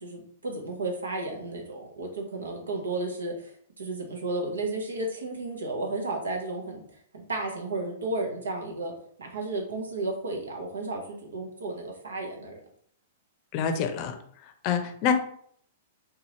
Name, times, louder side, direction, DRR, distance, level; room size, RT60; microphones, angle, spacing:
voice 1, 0.0-3.5 3.8-6.8 7.1-8.9 9.2-12.6, right 2 dB, 85° right, 1 dB, 0.9 m, -33 dB
voice 2, 13.5-14.2 14.6-15.1, left 7 dB, 45° left, 7 dB, 0.5 m, -26 dB
3.7 x 2.9 x 2.8 m, 0.62 s
hypercardioid pair, 115°, 0 cm